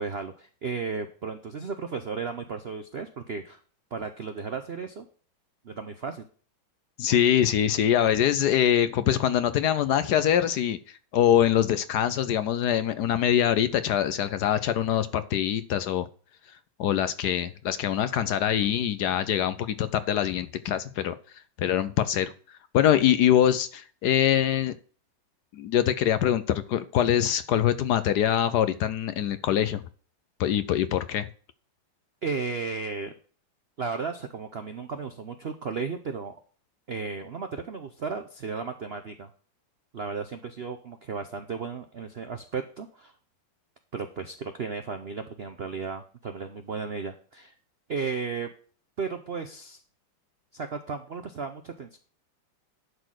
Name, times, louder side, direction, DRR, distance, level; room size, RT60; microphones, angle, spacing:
voice 1, 0.0-3.6 3.9-5.1 5.6-6.2 32.2-33.1 33.8-36.3 36.9-39.3 39.9-43.1 43.9-47.5 47.9-48.5 49.0-49.8 50.5-52.0, right 5 dB, 60° right, 7 dB, 0.6 m, -34 dB
voice 2, 7.0-10.8 11.1-16.1 16.8-21.1 21.6-22.3 22.7-24.7 25.5-29.8 30.4-31.3, left 10 dB, 70° left, 13 dB, 1.1 m, -24 dB
11.0 x 4.2 x 6.3 m, 0.42 s
omnidirectional pair, 2.1 m